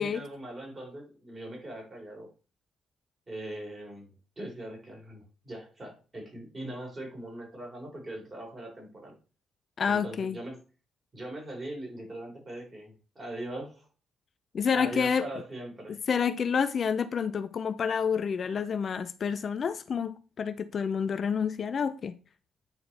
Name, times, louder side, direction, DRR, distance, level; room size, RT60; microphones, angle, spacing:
voice 1, 0.0-2.3 3.3-9.2 9.8-10.6 11.1-13.9 14.7-16.0, right 1 dB, 25° right, 3.9 m, -41 dB
voice 2, 9.8-10.4 14.5-15.3 15.9-22.2, left 6 dB, 50° left, 0.5 m, -29 dB
9.6 x 4.2 x 4.2 m
cardioid pair, 90°, 0 cm